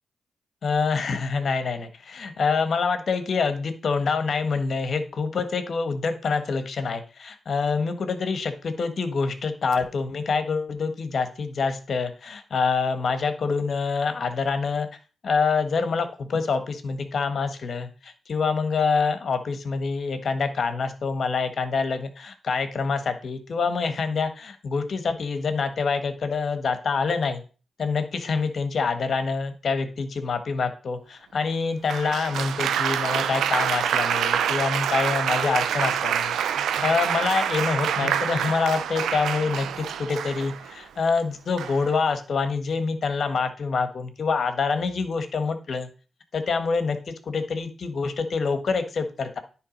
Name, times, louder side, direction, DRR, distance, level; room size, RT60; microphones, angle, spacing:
voice 1, 0.6-14.9 15.2-27.4 27.8-36.4 36.8-45.9 46.3-49.4, left 5 dB, 65° left, 9 dB, 1.2 m, -26 dB
Applause, 31.9-40.7 41.6-42.0, right 9 dB, 85° right, 0.4 m, -26 dB
9.8 x 3.4 x 5.1 m, 0.36 s
supercardioid pair, 50°, 0 cm